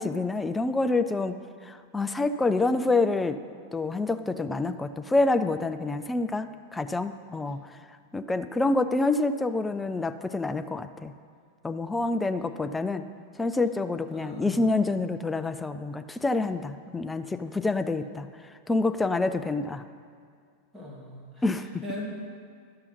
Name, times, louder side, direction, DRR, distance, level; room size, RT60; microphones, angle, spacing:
voice 1, 0.0-1.4 1.6-3.4 3.7-7.8 8.1-11.1 11.6-13.0 13.4-19.8 21.4-21.8, left 3 dB, 10° left, 9 dB, 0.4 m, -27 dB
voice 2, 14.1-14.7 20.7-21.4 21.8-22.2, left 1 dB, 5° right, -3 dB, 1.9 m, -38 dB
12.5 x 5.6 x 4.0 m, 2.1 s
figure-of-eight pair, 90°, 0 cm